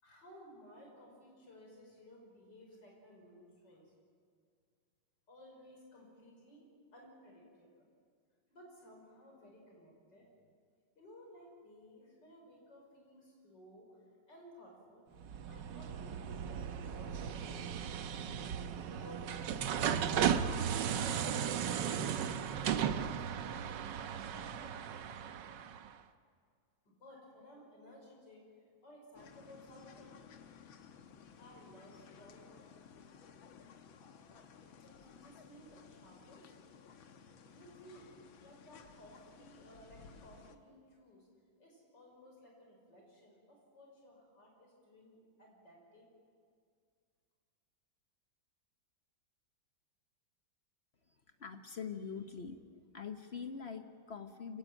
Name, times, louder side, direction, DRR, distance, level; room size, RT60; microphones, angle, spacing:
voice 1, 0.0-3.9 5.3-6.7 6.9-7.9 8.5-10.3 11.0-13.9 14.3-15.0 15.5-20.2 20.8-25.0 26.8-28.5 28.8-30.2 31.4-33.1 34.8-36.5 37.4-41.3 41.6-46.1, equal, 60° left, 0 dB, 6.1 m, -58 dB
sound 1, 15.2-25.9, right 8 dB, 70° right, 1.5 m, -36 dB
sound 2, 29.1-40.6, left 6 dB, 90° left, 2.0 m, -57 dB
voice 2, 51.1-52.6 52.9-54.6, left 6 dB, 40° left, 7 dB, 1.0 m, -44 dB
25.5 x 17.0 x 9.1 m, 2.1 s
omnidirectional pair, 2.1 m